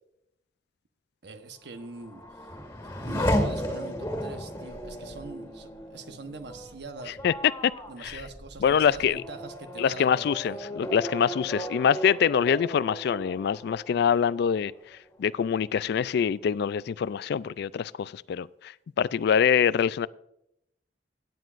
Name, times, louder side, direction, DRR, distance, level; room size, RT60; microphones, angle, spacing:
voice 1, 1.2-2.5 2.8-7.2 7.9-10.6, right 3 dB, 65° right, 8 dB, 1.1 m, -43 dB
Race car auto racing / Accelerating revving vroom, 1.7-15.0 15.4-16.1, equal, 15° left, 1.9 m, -35 dB
voice 2, 8.6-9.2 9.8-14.7 15.2-20.1, left 7 dB, 65° left, 19 dB, 0.3 m, -25 dB
17.0 x 9.3 x 2.5 m, 0.80 s
head